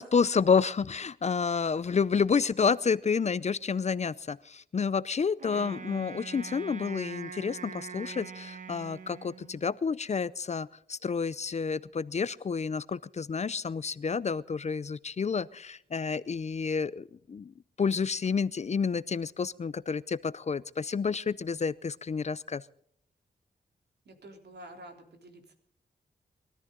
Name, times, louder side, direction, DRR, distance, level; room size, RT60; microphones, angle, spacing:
voice 1, 0.0-17.5 17.8-22.6, left 5 dB, 40° left, 19 dB, 0.5 m, -29 dB
Wind instrument woodwind instrument, 5.4-9.8, right 5 dB, 45° right, 1.7 m, -43 dB
voice 2, 5.6-6.1 24.1-25.5, right 1 dB, 75° right, 4 dB, 3.7 m, -50 dB
22.0 x 13.5 x 3.9 m, 0.66 s
wide cardioid pair, 90°, 17 cm